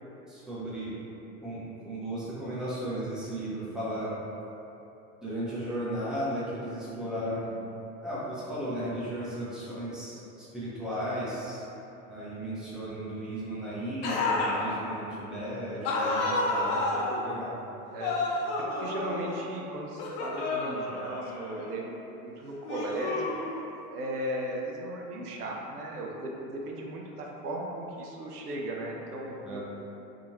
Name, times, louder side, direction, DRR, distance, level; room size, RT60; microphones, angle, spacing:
voice 1, 0.3-1.0 1.4-4.1 5.2-7.5 8.0-11.6 12.1-16.8 17.1-17.5 29.4-29.6, right 1 dB, ahead, -10 dB, 0.6 m, -35 dB
sound 1, 14.0-14.7 15.8-17.2 18.0-19.5 20.0-21.7 22.6-23.8, left 2 dB, 40° left, 0.5 m, -30 dB
voice 2, 17.9-18.5 18.8-23.3 23.9-29.6, right 1 dB, 80° right, -1 dB, 0.5 m, -36 dB
2.7 x 2.4 x 2.8 m, 3.0 s
figure-of-eight pair, 75°, 45 cm